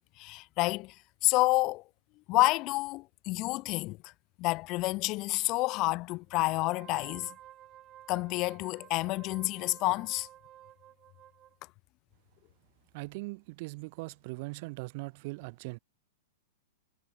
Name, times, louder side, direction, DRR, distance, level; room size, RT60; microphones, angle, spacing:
voice 1, 0.2-0.9 1.2-1.8 2.3-4.1 4.4-7.3 8.1-10.3, left 21 dB, 40° left, 0.4 m, -29 dB
Wind instrument woodwind instrument, 6.3-11.6, right 12 dB, 30° right, 6.7 m, -53 dB
voice 2, 12.9-15.8, right 26 dB, 50° right, 2.5 m, -40 dB
hypercardioid pair, 140°, 0 cm